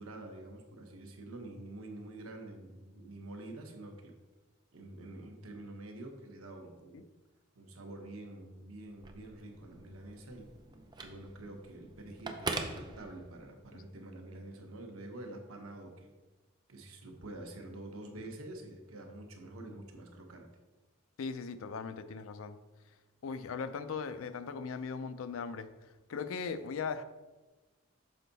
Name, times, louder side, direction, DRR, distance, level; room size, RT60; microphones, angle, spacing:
voice 1, 0.0-4.1 4.7-7.0 7.6-10.5 11.0-16.1 16.7-20.5, right 2 dB, 90° right, 3 dB, 1.0 m, -47 dB
Telephone, 8.9-13.6, right 3 dB, 20° right, 0.5 m, -43 dB
voice 2, 21.2-22.6 23.2-25.7 26.1-27.0, left 5 dB, 75° left, 12 dB, 0.4 m, -38 dB
6.4 x 4.5 x 4.0 m, 1.2 s
head